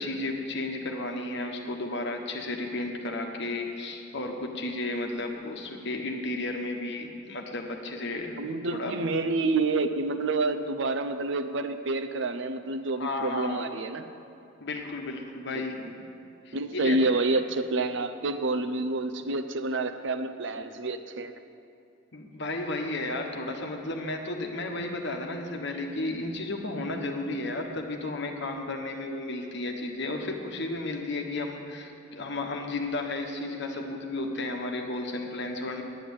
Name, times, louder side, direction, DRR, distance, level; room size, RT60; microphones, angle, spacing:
voice 1, 0.0-8.4 8.7-9.0 13.0-13.7 14.6-16.0 16.4-17.0 22.1-35.8, left 2 dB, 60° left, 3 dB, 1.3 m, -33 dB
voice 2, 8.4-14.1 15.5-15.9 16.5-21.3, right 3 dB, 65° right, 9 dB, 0.6 m, -28 dB
9.3 x 9.1 x 8.3 m, 2.6 s
head